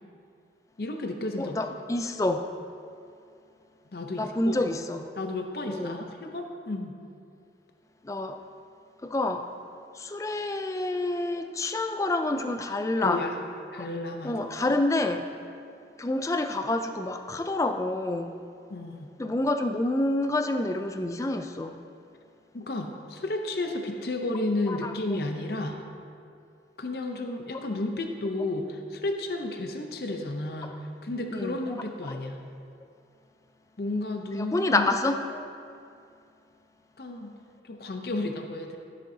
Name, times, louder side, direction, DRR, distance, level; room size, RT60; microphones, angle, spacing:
voice 1, 0.8-1.6 3.9-4.6 5.2-6.9 13.0-13.3 13.7-14.5 18.7-19.1 22.5-25.8 26.8-30.8 31.0-32.4 33.8-34.9 37.0-37.3 37.6-38.8, left 2 dB, 60° left, 4 dB, 0.7 m, -32 dB
voice 2, 1.4-2.5 4.2-5.1 5.7-6.0 8.0-8.4 9.0-9.5 9.9-13.3 13.8-13.9 14.2-15.3 16.0-18.4 19.2-21.8 24.7-24.9 30.6-30.8 31.3-31.6 32.1-32.2 34.3-35.5, left 2 dB, 15° left, 7 dB, 0.3 m, -28 dB
13.5 x 7.4 x 2.8 m, 2.5 s
head